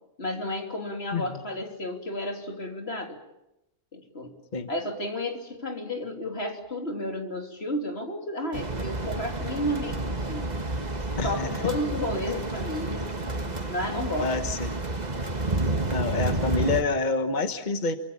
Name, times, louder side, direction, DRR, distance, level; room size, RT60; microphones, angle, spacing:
voice 1, 0.2-3.2 3.9-4.3 4.7-10.5 11.1-13.1 13.6-14.3, left 1 dB, 90° left, 3 dB, 3.5 m, -32 dB
sound 1, 8.5-16.8, right 2 dB, 45° right, 1.9 m, -30 dB
voice 2, 11.2-11.5 14.2-14.7 15.9-18.0, left 3 dB, 50° left, 8 dB, 1.4 m, -27 dB
28.0 x 25.0 x 7.3 m, 0.90 s
omnidirectional pair, 1.0 m